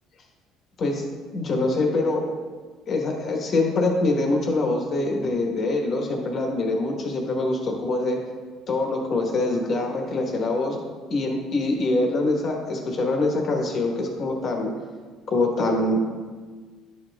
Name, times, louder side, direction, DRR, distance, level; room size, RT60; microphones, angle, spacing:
voice 1, 1.3-2.3 2.9-8.2 8.7-10.8 11.1-14.7 15.3-16.1, left 2 dB, 40° left, 1 dB, 1.3 m, -24 dB
11.0 x 5.3 x 2.4 m, 1.5 s
cardioid pair, 130°, 0 cm